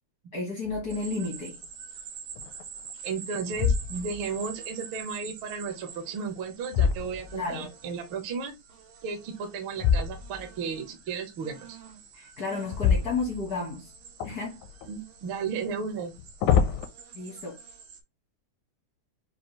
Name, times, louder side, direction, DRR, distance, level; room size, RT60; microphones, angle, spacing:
voice 1, 0.3-1.6 7.3-7.7 12.1-13.9 14.2-14.6 17.1-17.6, left 3 dB, 65° left, 0.9 m, -32 dB
sound 1, 0.6-1.1 1.6-1.7 2.3-2.9 3.5-4.4 6.0-7.7 9.8-10.6 12.7-13.8 14.2-14.9 16.0-16.9, left 7 dB, 80° left, 2.0 m, -27 dB
sound 2, 0.9-18.0, right 7 dB, 85° right, 2.7 m, -46 dB
voice 2, 3.0-8.5 9.0-11.8 14.9-16.1, right 5 dB, 70° right, 1.2 m, -34 dB
6.2 x 2.3 x 3.1 m
omnidirectional pair, 3.7 m